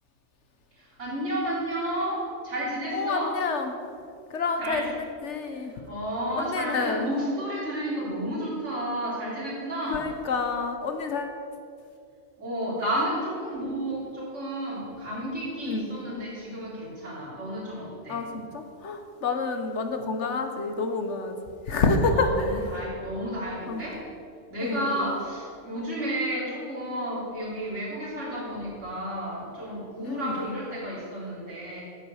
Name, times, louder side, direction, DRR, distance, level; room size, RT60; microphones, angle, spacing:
voice 1, 0.8-3.3 4.6-4.9 5.5-10.1 12.4-18.2 22.2-24.0 24.5-31.8, right 1 dB, 85° right, -7 dB, 3.8 m, -32 dB
voice 2, 2.9-3.7 4.3-5.7 6.4-7.1 9.9-11.4 15.6-15.8 18.1-21.4 21.7-22.7 23.7-23.8 24.6-25.1 30.0-30.5, left 3 dB, 75° left, 6 dB, 1.3 m, -28 dB
9.8 x 8.6 x 6.3 m, 2.4 s
omnidirectional pair, 1.2 m